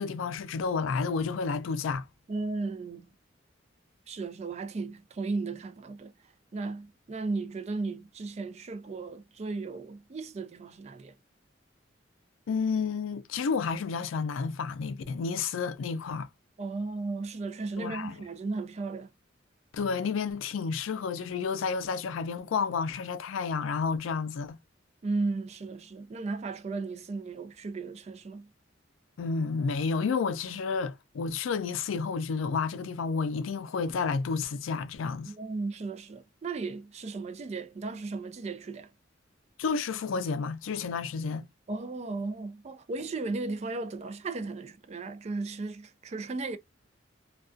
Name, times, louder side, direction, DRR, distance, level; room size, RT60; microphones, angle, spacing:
voice 1, 0.0-2.1 12.5-16.3 17.8-18.2 19.7-24.6 29.2-35.3 39.6-41.5, left 5 dB, 90° left, 0.4 m, -31 dB
voice 2, 2.3-3.1 4.1-6.1 6.5-11.1 16.6-19.1 25.0-28.5 35.2-38.9 41.7-46.6, right 3 dB, 35° right, 0.3 m, -35 dB
2.3 x 2.2 x 2.4 m
head